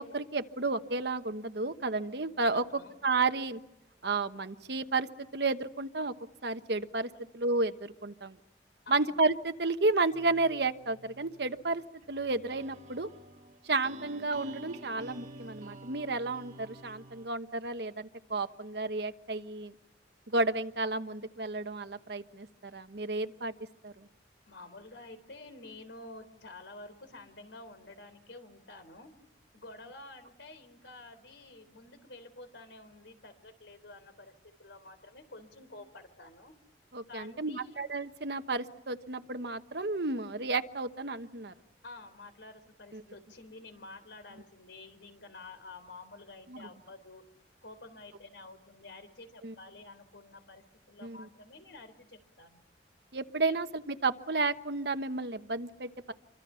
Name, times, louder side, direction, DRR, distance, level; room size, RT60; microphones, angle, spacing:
voice 1, 0.0-2.6 3.0-3.6 4.0-5.1 5.3-6.1 6.4-8.4 8.9-11.8 12.1-13.1 13.6-19.7 20.3-23.5 23.8-24.1 36.9-41.5 42.9-43.0 46.5-46.7 49.4-49.5 51.0-51.3 53.1-56.1, right 3 dB, 65° right, 9 dB, 1.2 m, -32 dB
voice 2, 2.5-3.0 7.1-7.3 8.9-9.1 24.5-29.1 29.5-36.6 37.1-37.8 41.8-47.2 47.6-52.6 53.4-53.5, left 2 dB, 85° left, 10 dB, 3.7 m, -50 dB
sound 1, 10.1-17.3, right 2 dB, 40° right, 2.0 m, -49 dB
27.5 x 25.0 x 5.7 m, 0.88 s
head